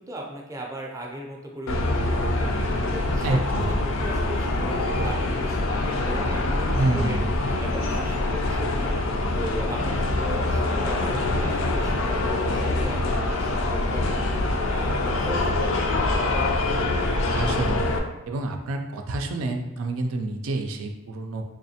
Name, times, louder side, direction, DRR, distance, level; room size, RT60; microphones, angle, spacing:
voice 1, 0.0-7.2 7.6-14.3 14.6-15.8 16.1-16.4, right 1 dB, 15° right, -1 dB, 0.5 m, -37 dB
sound 1, 1.7-18.0, left 2 dB, 65° left, 0.4 m, -25 dB
voice 2, 3.2-3.7 6.7-7.3 17.3-17.8 18.3-21.4, right 2 dB, 80° right, 3 dB, 0.4 m, -28 dB
3.6 x 3.1 x 2.8 m, 1.0 s
head